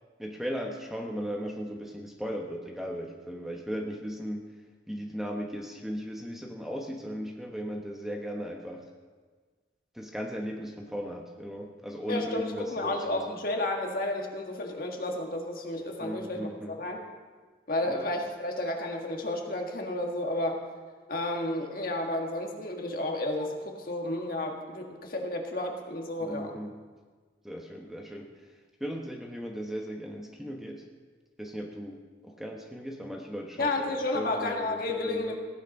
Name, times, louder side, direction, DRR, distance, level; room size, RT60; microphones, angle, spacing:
voice 1, 0.2-4.5 4.9-8.8 9.9-13.4 16.0-16.8 17.8-18.0 26.2-26.7 27.4-30.8 31.4-35.4, equal, ahead, 1 dB, 1.0 m, -37 dB
voice 2, 12.1-17.0 17.7-20.6 21.1-26.6 33.6-35.4, left 2 dB, 50° left, 2 dB, 1.7 m, -32 dB
16.0 x 9.5 x 5.3 m, 1.4 s
head